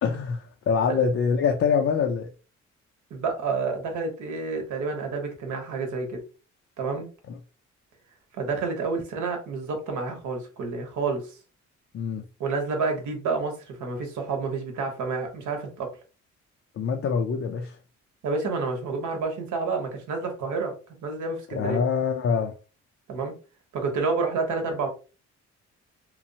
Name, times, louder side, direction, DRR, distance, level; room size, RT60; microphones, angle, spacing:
voice 1, 0.0-2.3 7.3-7.4 11.9-12.2 16.8-17.8 21.5-22.5, left 6 dB, 45° left, 0.4 m, -25 dB
voice 2, 3.1-6.2 6.8-7.1 8.3-11.3 12.4-15.9 18.2-20.8 21.0-21.8 23.1-23.3 23.7-24.9, right 4 dB, 75° right, 0.9 m, -29 dB
3.0 x 2.0 x 2.6 m
cardioid pair, 90°, 30 cm